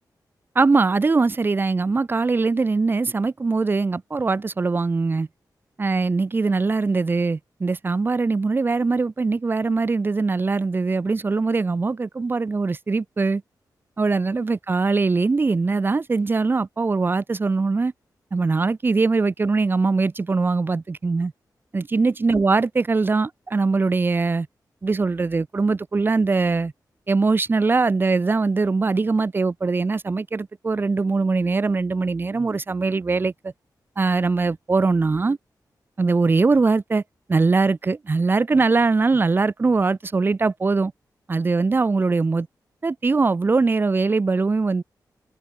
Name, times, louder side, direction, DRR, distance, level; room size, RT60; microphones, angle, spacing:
voice 1, 0.5-5.3 5.8-13.4 14.0-17.9 18.3-21.3 21.7-24.5 24.8-26.7 27.1-33.5 34.0-35.4 36.0-37.0 37.3-40.9 41.3-42.5 42.8-44.8, right 3 dB, 30° right, 1.1 m, -21 dB
wide cardioid pair, 170°, 7 cm